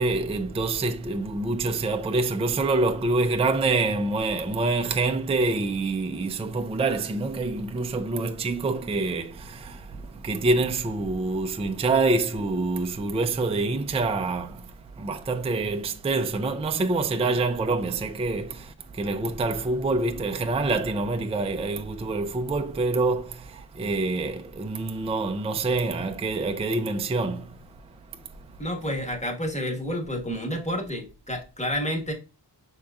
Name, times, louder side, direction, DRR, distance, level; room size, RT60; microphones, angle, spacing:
voice 1, 0.0-9.9 10.2-14.6 15.0-27.5, right 3 dB, 15° right, 0.4 m, -26 dB
voice 2, 28.6-32.1, equal, 15° left, 1.2 m, -29 dB
5.8 x 3.6 x 2.3 m
wide cardioid pair, 115°, 43 cm